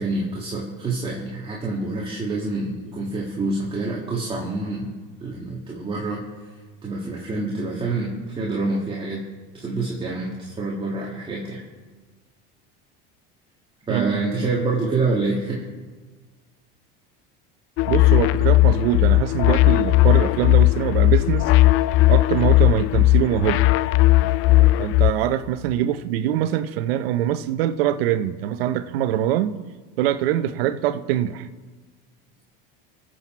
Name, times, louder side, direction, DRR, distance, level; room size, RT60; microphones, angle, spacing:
voice 1, 0.0-4.9 5.2-6.2 6.8-9.2 9.6-11.6 13.9-15.7 24.6-24.8, right 3 dB, 20° right, 2.1 m, -27 dB
sound 1, 17.8-25.1, left 17 dB, 45° left, 0.5 m, -17 dB
voice 2, 17.9-21.5 22.1-23.6 24.8-29.6 30.0-31.5, right 11 dB, 85° right, 0.9 m, -23 dB
23.0 x 7.8 x 4.5 m
supercardioid pair, 130°, 29 cm